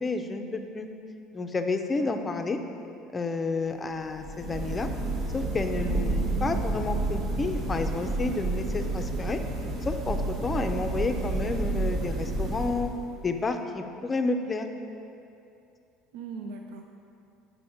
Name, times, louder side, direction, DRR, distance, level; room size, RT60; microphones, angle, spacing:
voice 1, 0.0-0.9 1.3-2.6 3.1-4.9 5.3-9.4 9.8-12.9 13.2-14.7, left 3 dB, 25° left, 6 dB, 0.5 m, -30 dB
sound 1, 4.1-13.3, right 2 dB, 55° right, 1.1 m, -30 dB
voice 2, 16.1-16.8, right 4 dB, 80° right, 3 dB, 0.4 m, -39 dB
6.9 x 5.0 x 4.9 m, 2.6 s
supercardioid pair, 100°, 0 cm